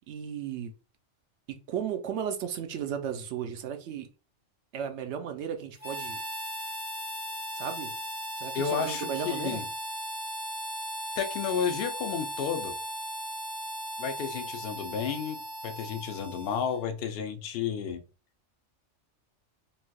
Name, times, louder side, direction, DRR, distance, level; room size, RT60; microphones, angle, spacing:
voice 1, 0.1-0.7 1.5-4.1 4.7-6.2 7.5-7.9 8.4-9.6, right 8 dB, 70° right, 0.8 m, -35 dB
Harmonica, 5.8-16.9, equal, 10° right, 0.7 m, -37 dB
voice 2, 8.5-9.7 11.2-12.8 14.0-15.4 15.6-18.0, left 7 dB, 60° left, 0.7 m, -32 dB
3.2 x 2.7 x 2.2 m
omnidirectional pair, 1.3 m